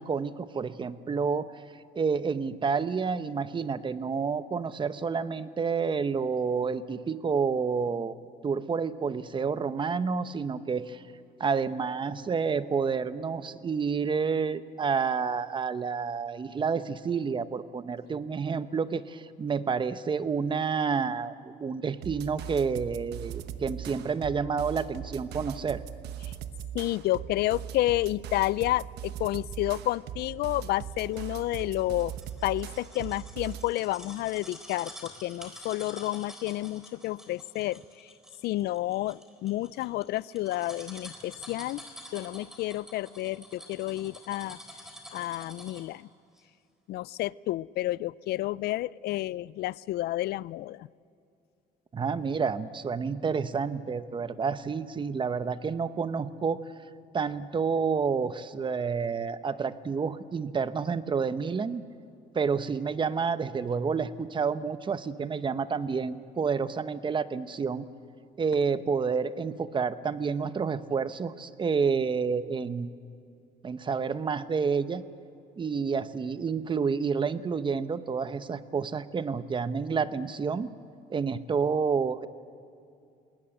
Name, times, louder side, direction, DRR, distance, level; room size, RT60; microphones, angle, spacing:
voice 1, 0.0-1.5 2.0-8.1 8.4-11.0 11.4-25.8 51.9-56.6 57.1-61.8 62.3-67.9 68.4-72.9 73.6-75.0 75.6-80.7 81.1-82.3, right 5 dB, 30° right, 13 dB, 0.8 m, -29 dB
sound 1, 22.0-33.7, right 10 dB, 75° right, 1.1 m, -40 dB
voice 2, 26.7-32.1 32.4-37.8 38.4-41.8 42.1-44.6 45.1-46.1 46.9-50.9, left 16 dB, 70° left, 22 dB, 0.4 m, -30 dB
sound 2, 30.8-46.0 46.4-46.5, equal, 5° right, 3.9 m, -48 dB
20.5 x 19.0 x 7.9 m, 2.5 s
cardioid pair, 110°, 17 cm